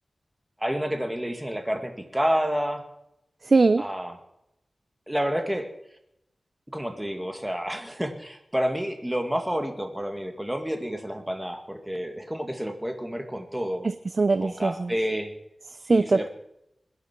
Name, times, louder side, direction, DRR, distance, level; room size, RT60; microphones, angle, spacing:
voice 1, 0.6-2.8 3.8-4.2 5.1-5.7 6.7-13.9 14.4-15.3 15.9-16.3, equal, 10° right, 5 dB, 2.2 m, -29 dB
voice 2, 3.4-3.9 13.8-14.9 15.8-16.3, right 3 dB, 55° right, 14 dB, 0.5 m, -22 dB
21.0 x 10.5 x 4.6 m, 0.82 s
wide cardioid pair, 90°, 0 cm